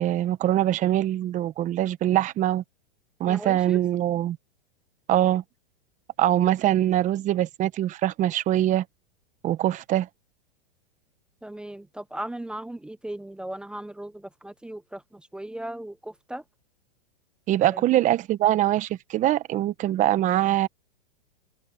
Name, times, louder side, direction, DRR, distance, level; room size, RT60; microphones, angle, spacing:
voice 1, 0.0-2.6 3.2-4.4 5.1-5.4 6.2-8.8 9.4-10.1 17.5-20.7, right 13 dB, 25° right, 1.2 m, -23 dB
voice 2, 3.2-3.8 11.4-16.4 17.6-17.8, right 1 dB, 5° right, 0.9 m, -37 dB
hypercardioid pair, 140°, 30 cm